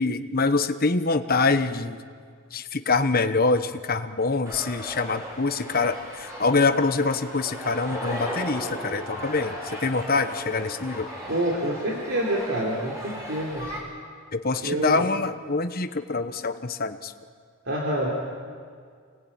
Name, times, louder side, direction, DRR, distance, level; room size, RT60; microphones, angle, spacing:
voice 1, 0.0-2.0 2.5-11.1 14.3-17.1, left 3 dB, 45° left, 9 dB, 1.1 m, -25 dB
sound 1, 4.5-13.8, equal, 15° right, 6.7 m, -36 dB
voice 2, 11.3-13.7 14.6-15.0 17.7-18.1, right 1 dB, 60° right, -2 dB, 3.5 m, -27 dB
28.5 x 20.0 x 8.8 m, 2.1 s
head